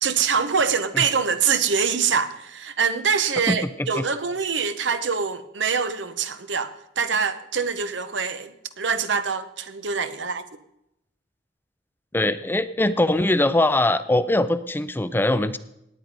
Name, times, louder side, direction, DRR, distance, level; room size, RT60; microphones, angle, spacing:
voice 1, 0.0-10.4, right 6 dB, 85° right, 1.0 m, -24 dB
voice 2, 3.5-4.0 12.1-15.6, left 1 dB, 10° left, 0.5 m, -22 dB
18.0 x 9.1 x 5.4 m
head